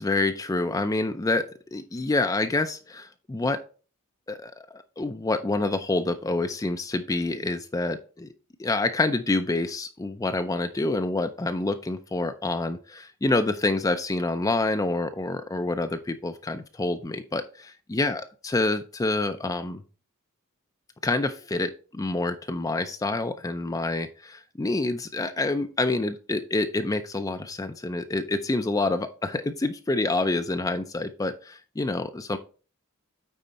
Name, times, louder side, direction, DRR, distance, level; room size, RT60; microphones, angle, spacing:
voice 1, 0.0-3.6 4.3-8.3 8.6-19.8 21.0-32.4, left 2 dB, 15° left, 8 dB, 0.4 m, -27 dB
9.1 x 4.3 x 4.1 m, 0.37 s
head